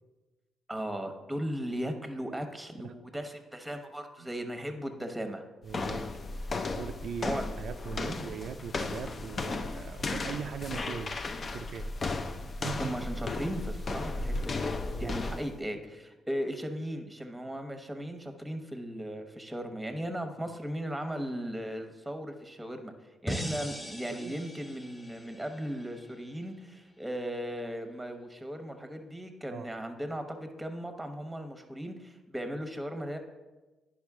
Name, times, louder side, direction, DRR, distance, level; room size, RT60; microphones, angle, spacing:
voice 1, 0.7-5.4 7.2-7.5 8.0-8.3 12.7-14.6 15.0-22.9 23.2-33.2, equal, 5° right, 6 dB, 1.0 m, -37 dB
voice 2, 5.6-6.1 6.8-11.2 11.5-11.9 12.6-12.8 14.9-15.2 20.5-20.6 24.1-24.4 29.5-29.7, right 7 dB, 70° right, 7 dB, 0.3 m, -40 dB
sound 1, 5.7-15.6, left 3 dB, 40° left, 0.5 m, -35 dB
sound 2, 23.3-26.4, equal, 15° left, 1.3 m, -40 dB
10.0 x 5.3 x 3.6 m, 1.2 s
cardioid pair, 90°, 0 cm